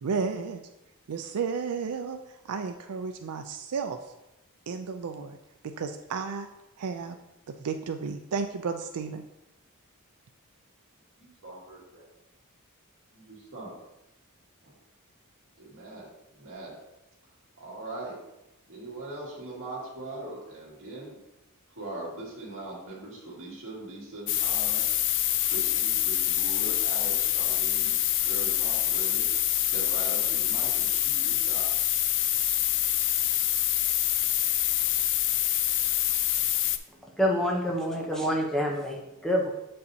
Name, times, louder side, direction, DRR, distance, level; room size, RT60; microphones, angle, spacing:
voice 1, 0.0-0.6 1.1-4.1 4.7-5.4 5.6-6.5 6.8-7.2 7.5-9.2, right 5 dB, 90° right, 6 dB, 0.4 m, -33 dB
voice 2, 11.2-12.0 13.5-13.7 14.6-14.7 15.6-16.8 17.6-18.2 18.7-21.2 21.7-24.8 25.4-31.7, right 2 dB, 60° right, -5 dB, 2.2 m, -41 dB
sound 1, 24.3-36.8, left 12 dB, 55° left, 0.4 m, -26 dB
voice 3, 37.2-39.5, equal, ahead, -1 dB, 0.8 m, -27 dB
7.7 x 5.4 x 2.8 m, 0.94 s
head